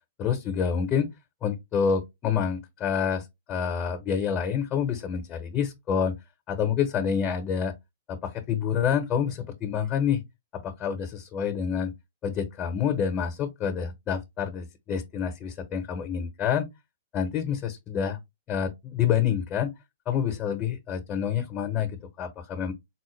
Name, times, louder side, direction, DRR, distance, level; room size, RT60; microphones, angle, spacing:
voice 1, 0.2-1.1 1.4-6.1 6.5-7.7 8.1-10.2 10.5-11.9 12.2-16.7 17.1-18.2 18.5-19.7 20.1-22.7, left 7 dB, 25° left, 0.8 m, -27 dB
4.1 x 2.1 x 3.1 m
hypercardioid pair, 130°, 0 cm